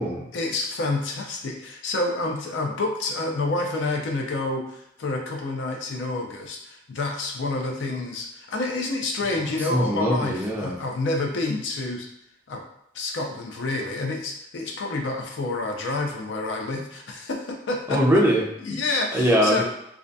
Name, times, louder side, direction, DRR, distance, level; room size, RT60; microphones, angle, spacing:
voice 1, 0.3-12.1 12.5-12.6 12.9-18.0 18.7-19.6, left 2 dB, 70° left, 1 dB, 0.5 m, -28 dB
voice 2, 9.6-10.8 17.9-18.8 19.1-19.6, equal, 10° right, -2 dB, 0.5 m, -22 dB
2.4 x 2.2 x 2.6 m, 0.80 s
head